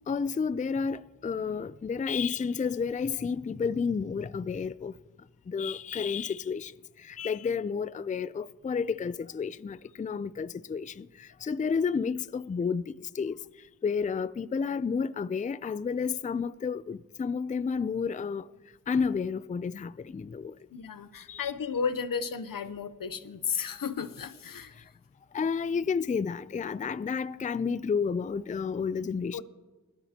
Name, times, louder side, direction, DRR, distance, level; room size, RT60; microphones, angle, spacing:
voice 1, 0.1-4.9 5.5-6.7 7.0-13.4 13.8-18.5 18.9-20.5 21.3-21.5 25.3-29.4, left 5 dB, 25° left, 0.3 m, -31 dB
voice 2, 20.7-24.7 29.3-29.4, left 6 dB, 85° left, 0.8 m, -33 dB
20.5 x 12.5 x 2.9 m
wide cardioid pair, 55°, 33 cm